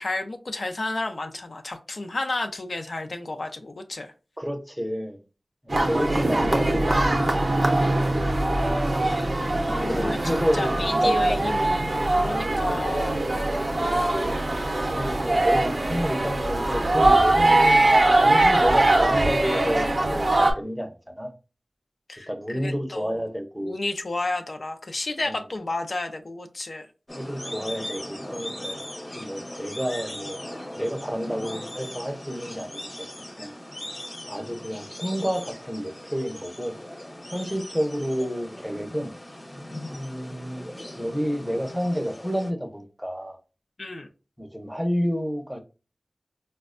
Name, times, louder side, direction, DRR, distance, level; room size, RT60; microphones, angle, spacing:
voice 1, 0.0-4.1 8.2-8.4 9.0-9.3 9.6-13.2 22.1-23.2 23.6-26.9 43.8-44.1, left 2 dB, 75° left, 0.4 m, -32 dB
voice 2, 4.4-5.2 5.6-7.2 9.8-11.6 14.9-17.9 18.1-20.9 21.2-21.3 22.3-23.7 25.3-25.4 27.1-28.8 29.1-30.4 30.8-32.8 33.4-33.5 34.3-36.7 37.3-39.1 39.9-40.7 41.0-43.4 44.4-45.6, equal, 5° right, 0.5 m, -30 dB
sound 1, 5.7-20.5, right 2 dB, 55° right, 0.5 m, -22 dB
sound 2, 27.1-42.5, left 1 dB, 30° left, 0.7 m, -39 dB
4.1 x 2.1 x 2.4 m
wide cardioid pair, 65°, 0 cm